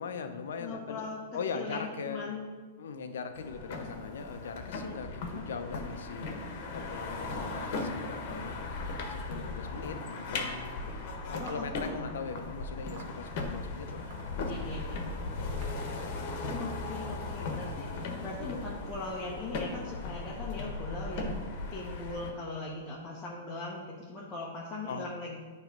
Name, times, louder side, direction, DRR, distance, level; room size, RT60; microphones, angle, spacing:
voice 1, 0.0-2.3 2.8-6.4 6.7-8.7 9.1-10.5 11.3-14.7 15.0-15.2 17.2-17.3 24.9-25.1, left 5 dB, 80° left, 8 dB, 0.7 m, -40 dB
voice 2, 0.6-1.2 1.5-2.5 5.2-5.4 11.4-12.1 12.3-12.4 14.5-15.0 16.6-21.4 21.7-25.4, left 3 dB, 15° left, -6 dB, 1.1 m, -40 dB
sound 1, 3.3-22.3, left 3 dB, 50° left, 1.2 m, -37 dB
sound 2, 11.5-12.4 12.9-13.2 13.9-15.0 15.6-15.7 16.0-17.4, right 2 dB, 50° right, 1.8 m, -53 dB
9.1 x 3.2 x 5.2 m, 1.4 s
hypercardioid pair, 145°, 0 cm